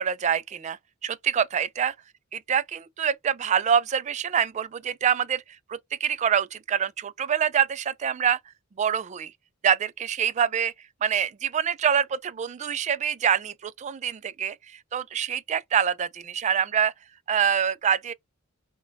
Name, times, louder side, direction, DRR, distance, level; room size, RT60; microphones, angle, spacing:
voice 1, 0.0-1.9 2.3-5.4 5.7-8.4 8.8-9.3 9.6-10.7 11.0-16.9 17.3-18.1, right 8 dB, 35° right, 0.3 m, -25 dB
4.2 x 2.2 x 3.9 m
head